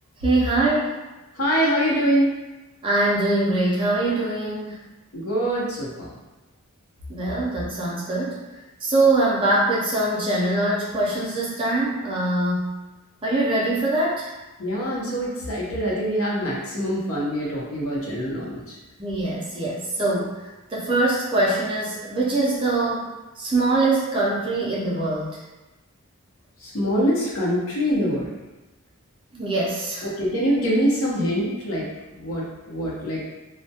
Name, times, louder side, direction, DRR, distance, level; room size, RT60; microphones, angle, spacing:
voice 1, 0.2-1.0 2.8-4.8 7.1-8.4 8.8-12.7 13.2-14.3 19.0-23.1 23.4-25.4 29.3-30.1, right 2 dB, 25° right, -5 dB, 0.4 m, -23 dB
voice 2, 1.4-2.3 5.1-6.1 14.6-18.6 26.6-28.3 30.0-31.9 32.2-33.3, equal, 70° left, -5 dB, 0.7 m, -24 dB
2.2 x 2.0 x 2.7 m, 1.1 s
head